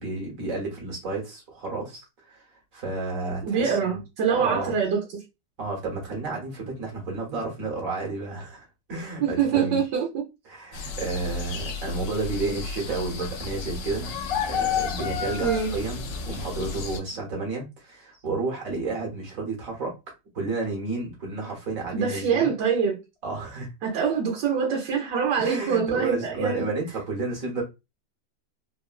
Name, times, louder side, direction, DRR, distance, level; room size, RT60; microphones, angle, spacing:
voice 1, 0.0-2.0 2.3-4.0 4.3-4.7 5.6-9.8 10.5-14.2 14.4-20.0 20.3-22.5 23.2-23.7 25.4-27.6, right 3 dB, 55° right, 1.4 m, -31 dB
voice 2, 3.4-5.2 9.2-10.2 15.4-15.7 21.9-23.0 23.8-26.7, right 6 dB, 75° right, 1.3 m, -24 dB
sound 1, 10.7-17.0, left 6 dB, 80° left, 1.2 m, -31 dB
3.6 x 2.1 x 2.3 m
omnidirectional pair, 1.9 m